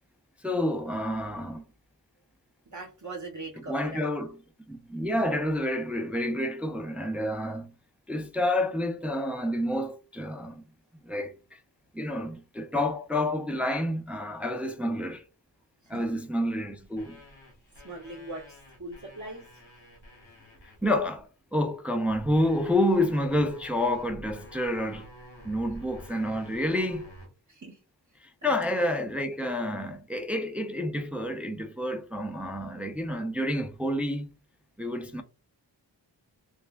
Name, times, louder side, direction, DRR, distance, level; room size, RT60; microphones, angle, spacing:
voice 1, 0.4-1.6 3.7-4.3 4.7-7.7 8.1-10.6 11.0-11.3 11.9-15.2 15.9-17.2 20.8-25.0 25.4-27.1 28.2-34.3 34.8-35.2, left 1 dB, 5° right, 0.4 m, -29 dB
voice 2, 2.7-4.0 15.8-16.2 17.8-19.6 27.5-27.8 28.4-28.9, right 2 dB, 40° right, 0.8 m, -41 dB
sound 1, 16.8-21.2 22.1-27.3, left 1 dB, 85° left, 1.6 m, -49 dB
3.4 x 2.1 x 3.4 m
wide cardioid pair, 60°, 45 cm